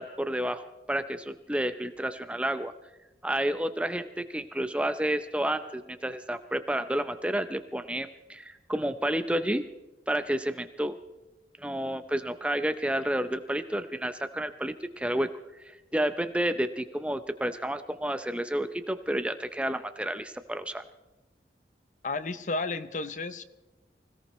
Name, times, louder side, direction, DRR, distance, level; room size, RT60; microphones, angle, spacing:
voice 1, 0.0-2.7 3.2-9.6 10.1-11.0 11.6-15.3 15.9-20.8, right 1 dB, 5° right, 10 dB, 0.5 m, -30 dB
voice 2, 22.0-23.4, left 3 dB, 45° left, 12 dB, 0.7 m, -32 dB
25.5 x 17.0 x 3.1 m, 1.1 s
head